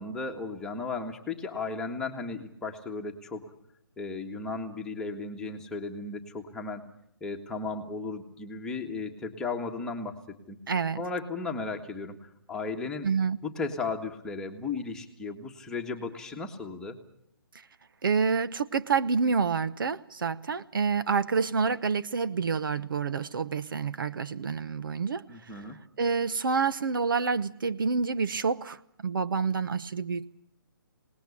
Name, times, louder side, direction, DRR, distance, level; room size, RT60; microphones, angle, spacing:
voice 1, 0.0-3.5 4.0-6.8 7.2-10.2 10.5-10.6 11.0-13.1 13.4-17.0 25.3-25.8, left 4 dB, 5° left, 1 dB, 1.7 m, -35 dB
voice 2, 10.7-11.0 13.0-13.4 18.0-25.2 25.5-25.6 26.0-30.3, right 5 dB, 65° right, 14 dB, 1.0 m, -28 dB
26.5 x 19.5 x 8.5 m, 0.75 s
hypercardioid pair, 160°, 12 cm